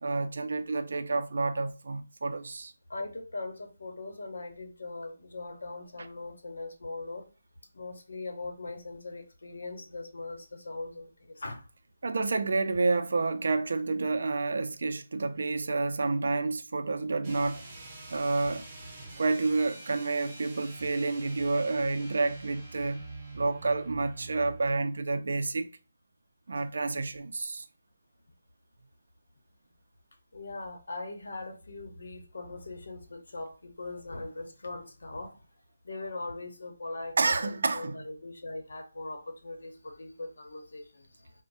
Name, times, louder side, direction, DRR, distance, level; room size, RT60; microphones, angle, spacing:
voice 1, 0.0-2.7 12.0-17.6 18.1-18.6 19.2-23.0 23.3-25.7 26.5-27.7 37.2-38.0, right 3 dB, 60° right, 0.4 m, -29 dB
voice 2, 2.9-7.3 7.7-11.6 30.3-35.4 35.8-41.3, left 2 dB, 75° left, 0.9 m, -40 dB
sound 1, 17.2-24.7, right 2 dB, 15° right, 0.9 m, -45 dB
4.5 x 2.1 x 2.6 m
hypercardioid pair, 170°, 0 cm